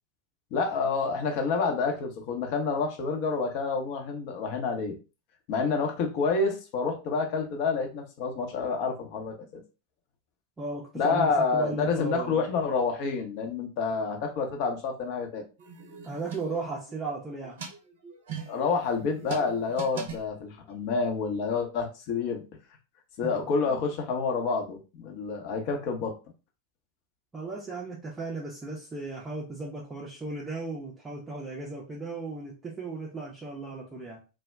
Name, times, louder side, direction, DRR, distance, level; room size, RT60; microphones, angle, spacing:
voice 1, 0.5-4.9 5.5-9.6 10.9-15.4 18.5-22.4 23.2-26.2, left 4 dB, 45° left, 3 dB, 0.7 m, -28 dB
voice 2, 10.6-12.5 16.0-17.6 23.3-23.8 27.3-34.2, right 3 dB, 15° right, -3 dB, 0.5 m, -36 dB
sound 1, 15.6-17.0 17.4-20.8, right 5 dB, 55° right, 0.6 m, -41 dB
2.2 x 2.1 x 3.4 m, 0.31 s
figure-of-eight pair, 90°, 0 cm